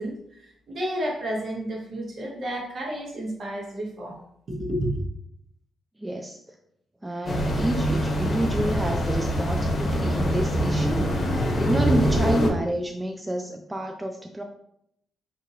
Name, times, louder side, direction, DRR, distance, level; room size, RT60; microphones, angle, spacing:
voice 1, 0.0-4.2 4.5-5.0, equal, 60° right, -2 dB, 1.1 m, -31 dB
voice 2, 6.0-6.4 7.0-14.4, right 1 dB, 20° right, 3 dB, 0.4 m, -29 dB
sound 1, 7.3-12.5, equal, 50° left, 0.7 m, -24 dB
3.7 x 2.7 x 2.7 m, 0.75 s
hypercardioid pair, 45°, 0 cm